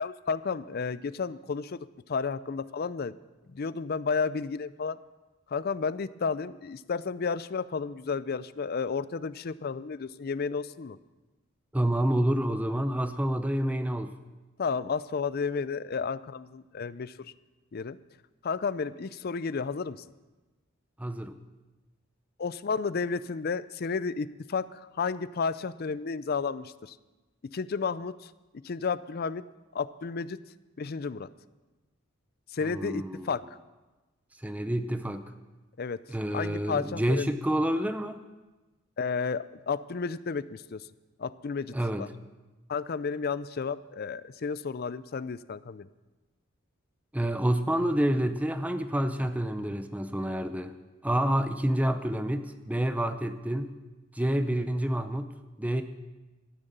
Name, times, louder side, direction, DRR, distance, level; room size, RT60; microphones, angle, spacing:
voice 1, 0.0-3.2 3.5-5.0 5.5-11.0 14.6-17.3 17.7-18.0 18.4-20.0 22.4-27.0 27.4-28.3 28.6-29.4 29.7-30.4 30.8-31.3 32.5-33.4 35.8-36.0 36.3-37.3 39.0-40.9 41.2-42.1 42.7-45.9, left 5 dB, 50° left, 16 dB, 0.5 m, -32 dB
voice 2, 11.7-14.1 21.0-21.4 32.6-33.4 34.4-35.3 36.1-38.2 41.7-42.1 47.1-50.7 51.0-53.7 54.1-55.3 55.6-55.8, right 1 dB, 5° right, 9 dB, 0.6 m, -28 dB
14.0 x 11.0 x 6.7 m, 1.2 s
head